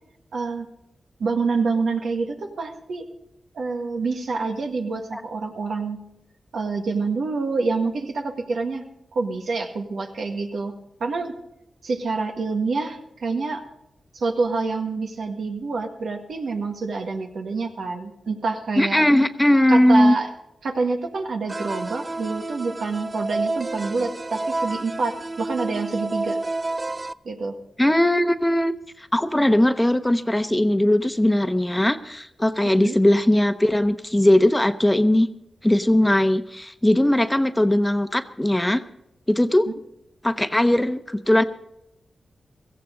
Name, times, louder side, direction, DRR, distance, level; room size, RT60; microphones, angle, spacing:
voice 1, 0.3-0.7 1.2-3.0 3.6-6.0 6.5-8.9 9.1-10.7 11.0-11.3 11.8-13.6 14.1-19.0 19.7-20.3 20.6-26.4 27.3-27.5 32.6-33.0, right 4 dB, 80° right, 3 dB, 1.7 m, -27 dB
voice 2, 18.8-20.1 27.8-28.7 29.0-35.3 35.6-38.8 39.3-39.7 40.2-41.4, left 1 dB, 15° left, 10 dB, 0.9 m, -19 dB
sound 1, 21.5-27.1, right 2 dB, 35° right, 0.4 m, -29 dB
16.5 x 14.5 x 3.8 m, 0.82 s
supercardioid pair, 40°, 0 cm